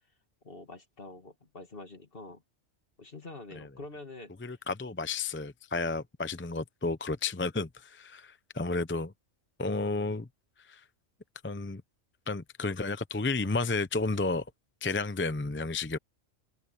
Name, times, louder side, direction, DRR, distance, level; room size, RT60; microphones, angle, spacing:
voice 1, 0.4-2.4 3.0-4.3, left 2 dB, 50° left, 2.5 m, -46 dB
voice 2, 4.4-9.1 9.6-10.3 10.6-10.8 11.4-11.8 12.3-14.5 14.8-16.0, left 3 dB, 15° left, 0.5 m, -32 dB
omnidirectional pair, 1.3 m